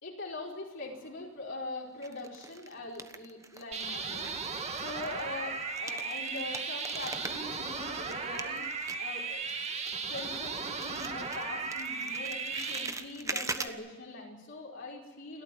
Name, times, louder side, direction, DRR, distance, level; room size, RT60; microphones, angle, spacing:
voice 1, 0.0-9.4 10.1-15.4, left 2 dB, 60° left, -2 dB, 4.7 m, -42 dB
sound 1, 0.8-1.4 2.0-3.9 4.2-10.5 10.8-13.7, right 3 dB, 15° right, 1.2 m, -42 dB
sound 2, 3.7-12.9, right 4 dB, 35° right, 2.3 m, -36 dB
29.5 x 13.5 x 9.3 m, 1.2 s
head